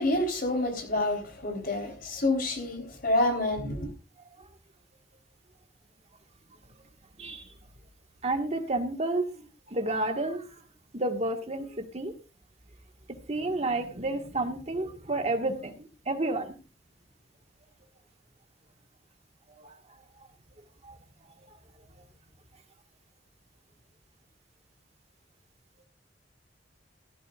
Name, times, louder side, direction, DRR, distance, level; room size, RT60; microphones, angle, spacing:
voice 1, 0.0-3.9, left 1 dB, 55° left, 3.7 m, -28 dB
voice 2, 8.2-10.5 10.9-12.1 13.3-16.6 19.6-19.7 20.8-21.0, right 2 dB, 40° right, 1.6 m, -31 dB
15.0 x 13.0 x 2.4 m
head